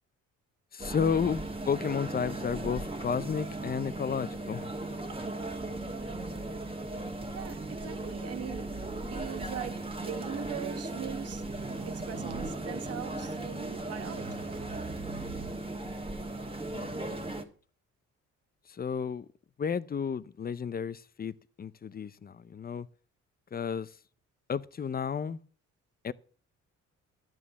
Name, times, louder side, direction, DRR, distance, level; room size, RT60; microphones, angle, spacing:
voice 1, 0.7-4.7 16.7-17.0 18.7-19.3 19.6-22.9 23.5-23.9 24.5-25.4 26.0-26.1, left 6 dB, 30° left, 0.6 m, -32 dB
sound 1, 0.8-17.4, right 2 dB, 20° right, 1.7 m, -37 dB
voice 2, 7.3-8.7 9.1-11.4 11.8-14.5, right 9 dB, 55° right, 1.3 m, -41 dB
sound 2, 9.3-10.5 11.2-12.5 13.4-13.5 13.7-15.7, right 7 dB, 85° right, 1.4 m, -46 dB
12.0 x 7.4 x 6.8 m
cardioid pair, 90°, 30 cm